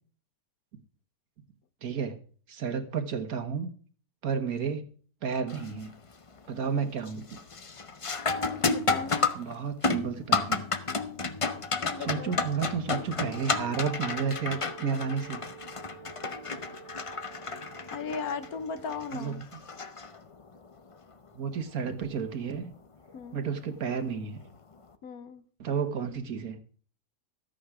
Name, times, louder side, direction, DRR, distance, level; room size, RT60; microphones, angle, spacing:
voice 1, 1.8-2.2 2.5-3.7 4.2-4.9 5.2-5.9 6.5-7.4 9.3-10.6 12.0-15.4 19.1-19.4 21.3-22.7 23.3-24.4 25.6-26.6, right 6 dB, 60° right, 8 dB, 1.7 m, -32 dB
sound 1, 5.5-5.9 6.3-6.7 7.1-20.6 23.1-23.2 24.0-24.2, left 4 dB, 40° left, 0.4 m, -32 dB
voice 2, 8.7-9.3 11.8-12.4 17.9-19.4 23.1-23.4 25.0-25.4, left 6 dB, 70° left, 13 dB, 1.3 m, -37 dB
Wind instrument woodwind instrument, 13.0-19.3, right 8 dB, 35° right, 1.7 m, -49 dB
13.0 x 9.0 x 4.9 m, 0.43 s
omnidirectional pair, 1.7 m